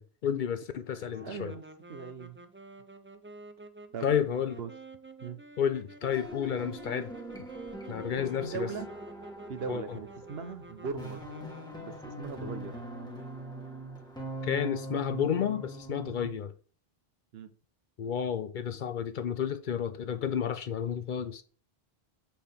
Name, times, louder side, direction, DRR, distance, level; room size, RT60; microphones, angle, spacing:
voice 1, 0.0-1.5 4.0-4.6 5.6-7.1 7.9-8.7 9.7-10.0 12.4-12.6 14.4-16.5 18.0-21.4, left 8 dB, 60° left, 0.6 m, -31 dB
voice 2, 0.9-1.6 1.9-2.4 3.9-4.1 4.6-4.7 5.2-5.4 8.4-8.9 9.5-11.2 11.8-12.8 17.3-17.5, right 5 dB, 75° right, 1.0 m, -39 dB
sound 1, 1.1-12.1, right 2 dB, 20° right, 0.3 m, -50 dB
sound 2, 6.0-16.3, right 2 dB, 5° left, 1.3 m, -42 dB
7.5 x 4.4 x 3.4 m
omnidirectional pair, 1.1 m